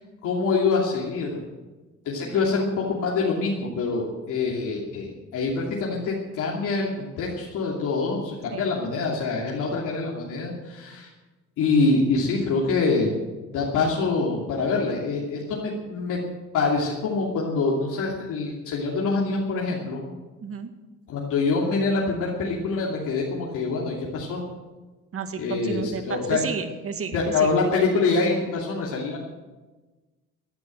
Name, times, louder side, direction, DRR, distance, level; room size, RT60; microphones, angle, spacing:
voice 1, 0.2-1.4 2.0-11.1 11.6-13.1 13.5-16.2 16.5-20.0 21.1-24.4 25.4-26.4 27.1-29.2, left 4 dB, 85° left, -3 dB, 2.8 m, -25 dB
voice 2, 20.4-20.7 25.1-27.5, right 6 dB, 45° right, 7 dB, 1.9 m, -32 dB
16.5 x 9.8 x 7.7 m, 1.2 s
cardioid pair, 90°, 30 cm